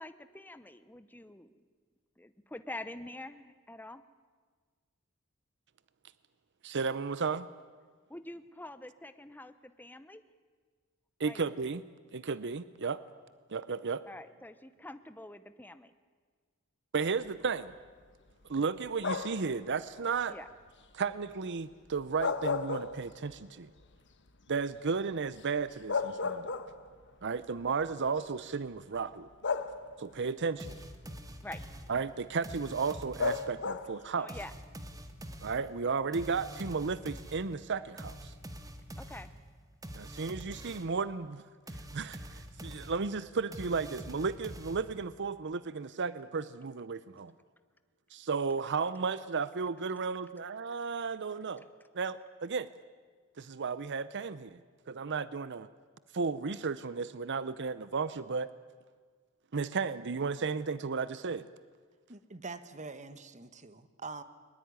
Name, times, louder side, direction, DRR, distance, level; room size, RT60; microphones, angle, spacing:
voice 1, 0.0-1.5 2.2-4.0 8.1-10.2 11.2-11.4 14.1-15.9 20.3-20.5 31.4-31.6 34.2-34.5 39.0-39.3, left 1 dB, 10° left, 11 dB, 0.8 m, -46 dB
voice 2, 6.6-7.5 11.2-11.8 12.1-13.0 13.5-14.0 16.9-17.7 18.5-20.4 20.9-23.7 24.5-26.5 27.2-29.3 30.0-30.8 31.9-34.3 35.4-38.3 40.0-41.4 41.9-47.3 48.1-51.6 51.9-52.7 53.4-54.6 54.9-55.7 56.1-58.5 59.5-61.5, right 5 dB, 55° right, 15 dB, 0.7 m, -34 dB
sound 1, 19.0-19.5 22.0-23.4 23.8-23.9 25.4-25.5 25.9-27.0 28.1-28.2 29.4-30.2 33.2-34.1, left 4 dB, 55° left, 1.3 m, -33 dB
sound 2, 30.6-33.6 34.3-41.0 41.7-45.2, right 1 dB, 15° right, 1.6 m, -46 dB
voice 3, 62.1-64.2, right 4 dB, 35° right, 12 dB, 1.3 m, -44 dB
22.0 x 20.5 x 9.6 m, 1.6 s
head